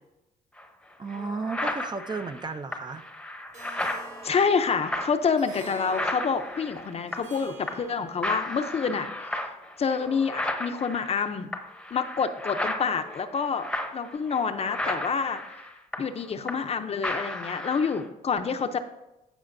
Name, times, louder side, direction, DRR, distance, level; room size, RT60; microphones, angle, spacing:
sound 1, 0.6-0.7 1.1-7.4 7.7-8.0 8.2-16.8 17.0-18.0, left 1 dB, 5° left, 0.8 m, -34 dB
voice 1, 1.0-3.1, right 4 dB, 25° right, 10 dB, 0.5 m, -33 dB
Harp, 3.5-8.5, right 2 dB, 45° right, 2.4 m, -47 dB
voice 2, 4.2-9.4 9.8-11.5 11.9-13.7 13.9-15.4 16.0-18.8, left 5 dB, 40° left, 8 dB, 0.6 m, -27 dB
15.0 x 5.0 x 2.6 m, 0.96 s
cardioid pair, 105°, 16 cm